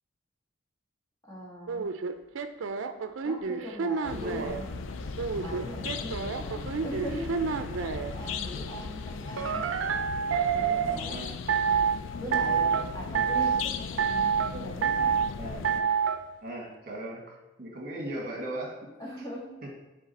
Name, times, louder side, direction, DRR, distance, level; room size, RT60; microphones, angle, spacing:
voice 1, 1.3-1.9 3.2-4.7 5.4-9.6 10.5-11.2 12.2-15.2 19.0-19.5, equal, 20° left, -5 dB, 1.7 m, -40 dB
sound 1, 1.7-4.6 5.2-8.1 9.4-11.0 11.5-12.0 12.3-12.8 13.1-13.6 14.0-14.5 14.8-15.3 15.6-16.2, right 6 dB, 80° right, 0.5 m, -28 dB
sound 2, 4.0-15.8, left 5 dB, 70° left, 0.4 m, -38 dB
voice 2, 4.1-4.6 5.3-5.4 10.8-11.3 15.3-15.9 16.4-18.9 19.6-19.7, right 1 dB, 45° right, 0 dB, 1.5 m, -38 dB
sound 3, 4.4-8.8, equal, 55° left, 1.5 m, -45 dB
7.4 x 3.8 x 4.1 m, 1.1 s
head